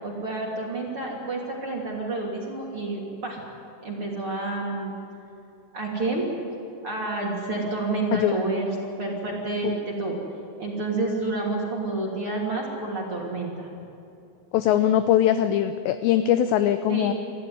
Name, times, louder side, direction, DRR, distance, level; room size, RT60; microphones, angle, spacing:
voice 1, 0.0-3.4 3.8-5.0 5.7-6.2 6.8-10.2 10.6-13.7 16.9-17.1, right 2 dB, 35° right, -2 dB, 3.0 m, -29 dB
voice 2, 14.5-17.1, left 11 dB, 85° left, 10 dB, 2.5 m, -21 dB
26.5 x 14.5 x 9.7 m, 2.8 s
omnidirectional pair, 5.8 m